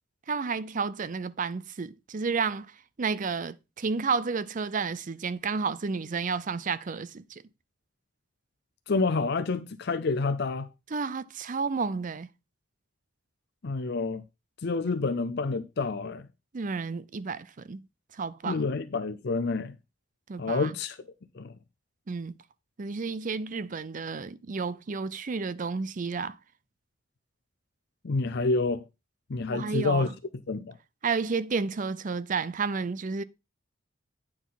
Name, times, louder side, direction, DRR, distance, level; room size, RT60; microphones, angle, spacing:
voice 1, 0.3-2.7 3.0-7.4 10.9-12.3 16.5-17.8 18.2-18.6 20.3-20.7 22.1-22.4 22.8-26.4 29.5-30.1 31.0-33.2, right 5 dB, 40° right, 0.5 m, -31 dB
voice 2, 8.9-10.7 13.6-14.2 14.6-16.3 18.4-19.7 20.4-21.0 21.3-21.5 28.0-28.8 29.3-30.1 30.5-30.8, left 3 dB, 55° left, 0.6 m, -28 dB
9.3 x 6.0 x 4.1 m
head